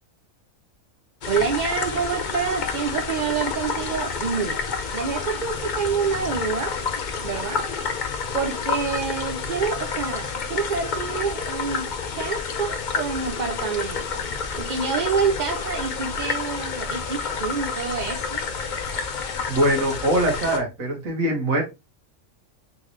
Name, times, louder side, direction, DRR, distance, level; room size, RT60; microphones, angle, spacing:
sound 1, 1.2-20.6, left 5 dB, 45° left, 0.7 m, -29 dB
voice 1, 1.3-4.6 4.9-6.8 7.2-7.6 8.3-11.9 12.2-14.2 14.6-18.4, right 6 dB, 60° right, 0.4 m, -27 dB
voice 2, 19.5-21.6, right 1 dB, 75° right, 1.7 m, -22 dB
4.1 x 3.8 x 3.1 m
omnidirectional pair, 1.4 m